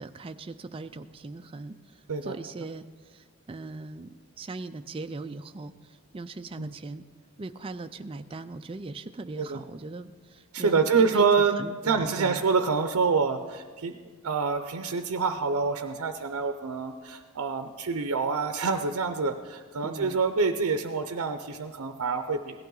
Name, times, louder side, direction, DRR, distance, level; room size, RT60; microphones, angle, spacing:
voice 1, 0.0-7.1 7.4-12.4 19.8-20.2, right 3 dB, 25° right, 8 dB, 0.3 m, -40 dB
voice 2, 10.5-11.6 11.8-22.6, right 5 dB, 75° right, 7 dB, 0.6 m, -26 dB
17.0 x 12.0 x 3.9 m, 1.5 s
head